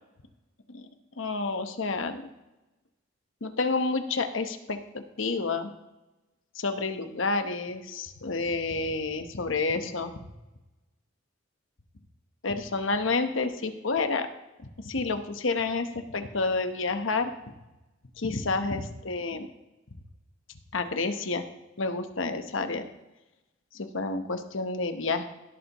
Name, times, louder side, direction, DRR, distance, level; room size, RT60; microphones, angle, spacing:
voice 1, 1.2-2.3 3.4-5.7 6.5-10.1 12.4-14.3 14.6-17.3 18.2-19.5 20.7-21.4 21.8-22.9 23.7-25.2, left 3 dB, 75° left, 7 dB, 1.0 m, -29 dB
16.5 x 8.1 x 3.0 m, 1.0 s
head